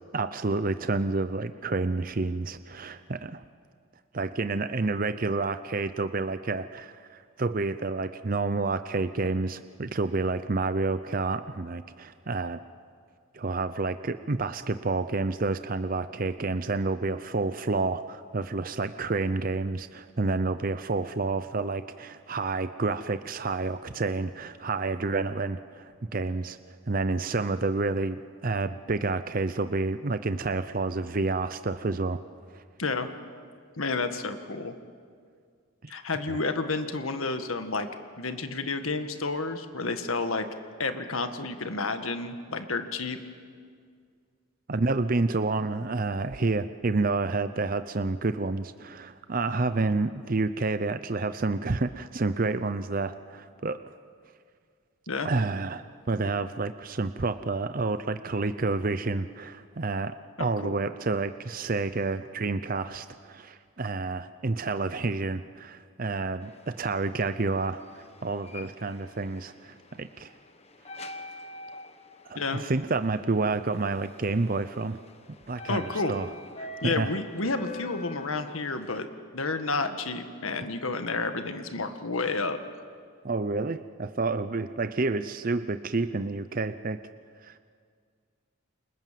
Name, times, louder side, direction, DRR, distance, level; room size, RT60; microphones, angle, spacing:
voice 1, 0.1-3.4 4.1-7.0 7.4-12.6 13.3-26.6 26.9-32.2 32.5-32.6 36.3-36.4 44.7-53.8 55.2-70.3 72.3-75.0 75.5-76.3 76.6-77.1 83.2-87.0 87.4-87.6, right 3 dB, 40° right, 11 dB, 0.6 m, -29 dB
voice 2, 33.8-34.7 35.9-37.9 38.2-40.5 40.8-43.2 55.1-55.3 60.4-60.8 72.4-72.6 75.7-76.1 76.8-79.1 79.3-82.6, left 3 dB, 85° left, 8 dB, 1.8 m, -30 dB
sound 1, 66.4-79.0, left 3 dB, 30° left, 1.3 m, -46 dB
29.5 x 26.5 x 7.6 m, 2.1 s
head